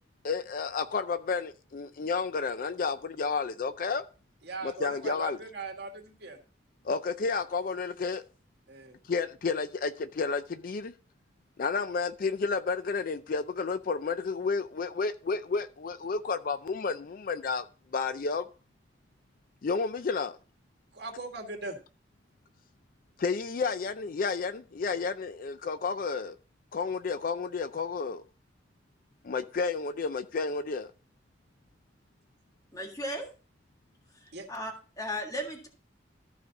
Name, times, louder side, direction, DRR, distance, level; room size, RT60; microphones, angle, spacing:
voice 1, 0.2-4.0 4.6-5.4 6.8-8.2 9.1-10.9 11.6-17.7 17.9-18.5 19.6-20.4 23.2-26.4 26.7-28.2 29.2-30.9, left 4 dB, 50° left, 0.4 m, -31 dB
voice 2, 4.4-6.4 8.7-9.0 20.9-21.8 34.3-34.5, right 3 dB, 65° right, 2.0 m, -40 dB
voice 3, 32.7-33.3 34.5-35.7, equal, 20° left, 1.7 m, -35 dB
13.5 x 5.0 x 3.9 m
head